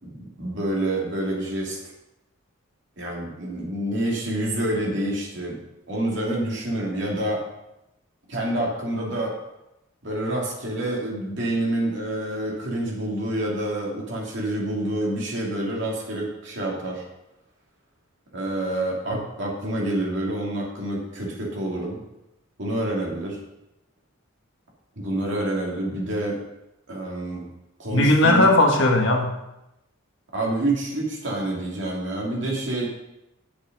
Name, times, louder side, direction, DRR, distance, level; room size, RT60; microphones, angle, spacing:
voice 1, 0.0-1.8 3.0-5.6 5.9-7.4 8.3-9.3 10.0-17.0 18.3-22.0 22.6-23.4 25.0-26.4 26.9-27.5 27.8-28.5 30.3-32.9, right 1 dB, 60° right, -3 dB, 2.8 m, -27 dB
voice 2, 27.9-29.3, left 2 dB, 60° left, 2 dB, 1.5 m, -17 dB
8.4 x 6.9 x 5.3 m, 0.90 s
head